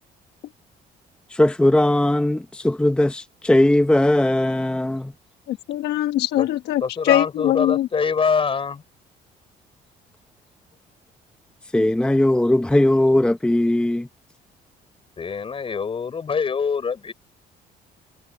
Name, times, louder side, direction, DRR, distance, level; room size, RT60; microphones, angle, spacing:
voice 1, 1.3-5.1 11.7-14.1, left 1 dB, 5° left, 0.9 m, -19 dB
voice 2, 5.5-7.9, left 13 dB, 80° left, 1.3 m, -22 dB
voice 3, 6.8-8.8 15.2-17.1, left 5 dB, 35° left, 4.5 m, -24 dB
cardioid pair, 110°, 17 cm